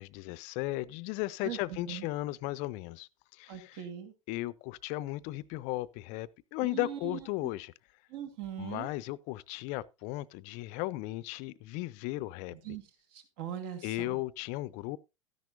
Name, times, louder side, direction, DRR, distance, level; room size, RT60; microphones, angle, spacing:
voice 1, 0.0-3.8 4.3-7.7 8.6-12.6 13.8-15.0, left 18 dB, 45° left, 0.6 m, -36 dB
voice 2, 1.4-2.1 3.5-4.1 6.7-7.5 8.1-8.9 12.5-12.8 13.1-14.2, right 10 dB, 50° right, 2.5 m, -41 dB
13.5 x 10.5 x 2.6 m
figure-of-eight pair, 85°, 17 cm